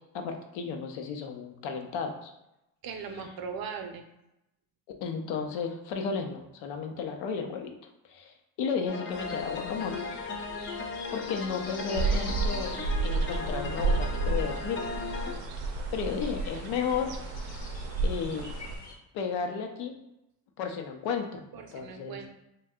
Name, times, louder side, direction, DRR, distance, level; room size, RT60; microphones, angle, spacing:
voice 1, 0.1-2.3 5.0-7.7 8.0-10.0 10.4-10.5 11.1-14.8 15.9-17.1 18.0-18.5 19.1-19.9 20.6-21.4 21.7-22.2, left 6 dB, 75° left, 5 dB, 0.7 m, -33 dB
voice 2, 2.8-4.0 21.5-22.3, right 6 dB, 50° right, 5 dB, 0.6 m, -39 dB
sound 1, 8.9-15.3, left 4 dB, 30° left, 0.4 m, -37 dB
sound 2, 9.1-18.9, left 2 dB, 55° left, 1.0 m, -46 dB
sound 3, 11.9-18.8, right 3 dB, 90° right, 0.6 m, -31 dB
2.7 x 2.2 x 3.5 m, 0.89 s
supercardioid pair, 85°, 46 cm